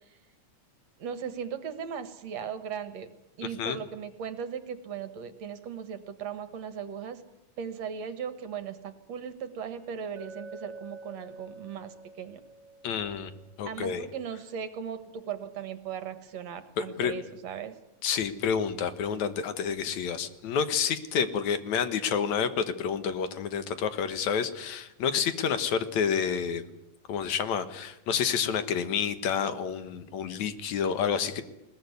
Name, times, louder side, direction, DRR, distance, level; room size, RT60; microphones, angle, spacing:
voice 1, 1.0-3.1 3.4-7.2 7.6-12.4 13.7-17.8, right 7 dB, 65° right, 12 dB, 2.5 m, -38 dB
Chink clink, 10.2-14.2, right 3 dB, 50° right, 3.3 m, -47 dB
voice 2, 12.8-13.3 13.6-14.1 16.8-17.1 18.0-26.6 27.1-31.4, left 7 dB, 75° left, 11 dB, 2.7 m, -29 dB
21.0 x 19.5 x 9.5 m, 0.88 s
omnidirectional pair, 3.3 m